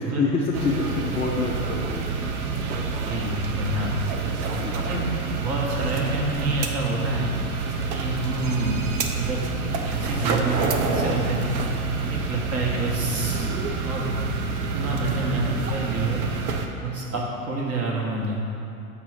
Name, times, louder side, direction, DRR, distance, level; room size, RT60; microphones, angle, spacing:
voice 1, 0.0-2.1 4.5-4.8, left 4 dB, 15° left, -3 dB, 0.4 m, -27 dB
sound 1, 0.5-16.7, right 4 dB, 65° right, 1.0 m, -27 dB
voice 2, 2.7-3.9 4.7-5.1 5.4-7.3 7.9-8.8 9.2-9.4 9.9-11.5 12.1-13.5 13.8-14.1 14.6-16.2 16.8-18.4, right 2 dB, 30° right, -3 dB, 1.7 m, -28 dB
6.7 x 5.0 x 6.3 m, 2.8 s
hypercardioid pair, 105°, 47 cm